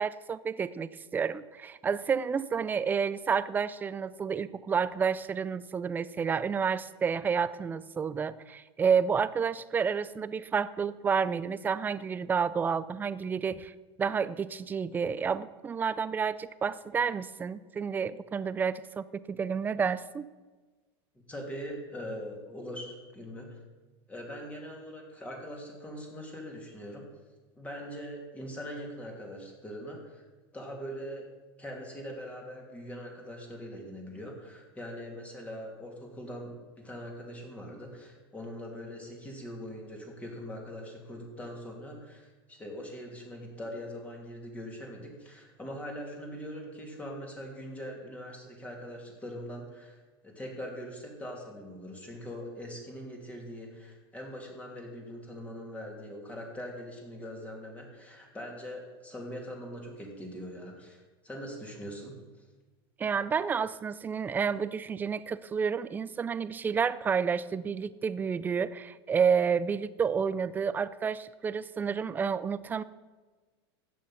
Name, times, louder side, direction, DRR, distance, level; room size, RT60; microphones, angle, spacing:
voice 1, 0.0-13.7 14.0-20.3 63.0-72.8, right 6 dB, 15° right, 16 dB, 0.4 m, -30 dB
voice 2, 21.1-23.6 24.1-27.1 27.6-30.2 30.5-31.3 31.6-50.0 50.2-62.2, equal, 10° left, 0 dB, 2.8 m, -42 dB
14.0 x 9.3 x 5.8 m, 1.3 s
supercardioid pair, 145°, 14 cm